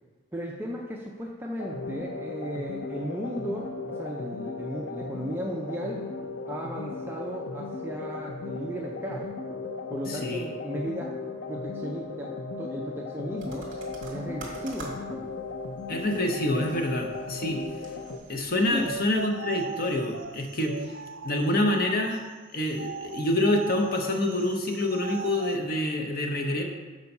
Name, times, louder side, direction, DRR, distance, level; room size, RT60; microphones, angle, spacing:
voice 1, 0.3-6.0 6.5-9.3 9.9-11.1 11.5-13.7 14.1-15.3 18.7-19.0, equal, 10° right, -2 dB, 0.5 m, -35 dB
sound 1, 1.6-18.2, left 3 dB, 85° left, 0.7 m, -36 dB
voice 2, 10.1-10.4 15.9-17.6 18.3-20.8 21.2-22.2 22.5-26.6, left 1 dB, 45° left, 3 dB, 0.9 m, -27 dB
sound 2, 13.4-19.2, right 2 dB, 40° right, 1.8 m, -48 dB
sound 3, 18.8-22.2 22.7-25.6, right 5 dB, 65° right, 0.6 m, -39 dB
7.0 x 4.6 x 5.4 m, 1.3 s
head